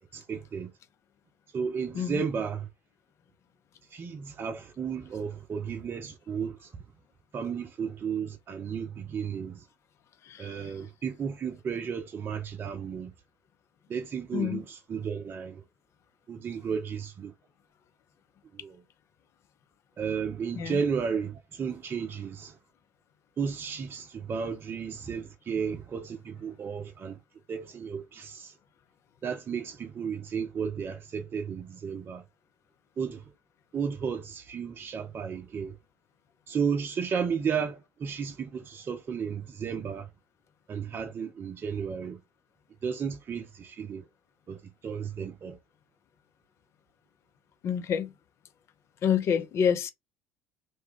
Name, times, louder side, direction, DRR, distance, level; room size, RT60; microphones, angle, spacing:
voice 1, 0.1-0.7 1.5-2.7 3.9-6.8 7.3-9.7 10.4-13.1 13.9-15.6 16.3-17.3 18.5-18.8 20.0-22.6 23.4-27.2 27.5-28.5 29.2-32.2 33.0-33.2 33.7-35.8 36.5-40.1 40.7-42.2 42.8-44.1 44.5-45.6, right 6 dB, 35° right, 0.5 m, -33 dB
voice 2, 47.6-48.1 49.0-49.9, left 8 dB, 45° left, 0.5 m, -27 dB
2.6 x 2.2 x 3.5 m
figure-of-eight pair, 55°, 6 cm